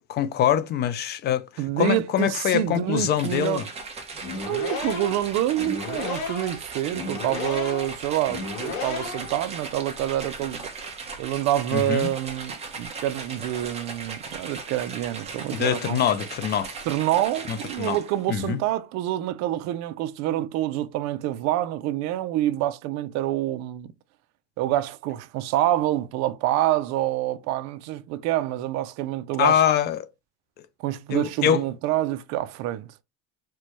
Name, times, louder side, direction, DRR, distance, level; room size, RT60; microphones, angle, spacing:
voice 1, 0.1-1.4 1.8-3.7 11.7-12.1 15.5-16.7 17.5-18.0 18.3-18.6 29.4-30.1 31.1-31.6, left 9 dB, 35° left, 0.4 m, -24 dB
voice 2, 1.6-3.7 4.5-10.7 11.2-16.0 16.9-23.9 24.6-29.6 30.8-32.9, right 13 dB, 60° right, 0.5 m, -27 dB
sound 1, 3.2-18.3, right 4 dB, 20° right, 0.9 m, -38 dB
sound 2, 4.1-9.4, left 4 dB, 80° left, 1.4 m, -33 dB
4.4 x 2.2 x 3.0 m
cardioid pair, 150°, 31 cm